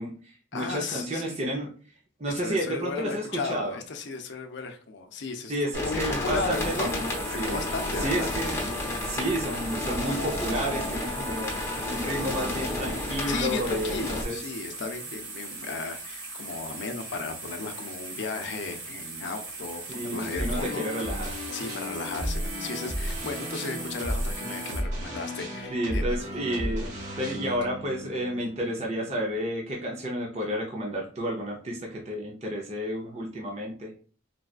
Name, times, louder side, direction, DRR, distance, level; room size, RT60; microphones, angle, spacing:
voice 1, 0.0-1.7 2.2-3.8 5.5-7.6 8.0-8.6 9.0-11.5 11.9-14.4 19.9-21.3 25.7-33.9, equal, 35° right, -1 dB, 0.6 m, -31 dB
voice 2, 0.5-1.4 2.3-8.3 13.3-21.2 21.5-26.0, left 3 dB, 60° left, 6 dB, 0.5 m, -35 dB
sound 1, 5.7-14.2, left 1 dB, 15° left, 0.9 m, -31 dB
sound 2, 6.5-24.8, right 3 dB, 85° right, 1.4 m, -40 dB
sound 3, 20.3-29.5, equal, 70° right, 1.5 m, -34 dB
4.0 x 2.3 x 2.3 m, 0.41 s
head